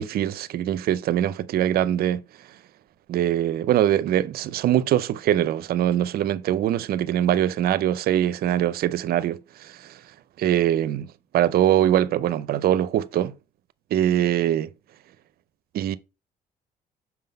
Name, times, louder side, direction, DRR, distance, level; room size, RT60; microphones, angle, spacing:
voice 1, 0.0-2.2 3.1-10.0 10.4-13.4 13.9-14.7 15.7-16.0, right 11 dB, 65° right, 0.5 m, -23 dB
6.1 x 3.8 x 5.2 m
supercardioid pair, 75°, 17 cm